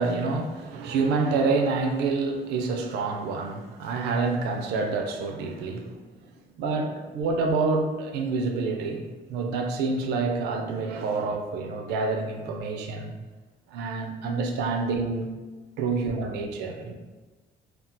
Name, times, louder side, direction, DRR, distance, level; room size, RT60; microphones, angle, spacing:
voice 1, 0.0-5.9 6.6-13.1 13.7-15.3 15.8-16.9, right 4 dB, 85° right, 4 dB, 0.4 m, -27 dB
2.3 x 2.1 x 3.8 m, 1.3 s
cardioid pair, 110°, 17 cm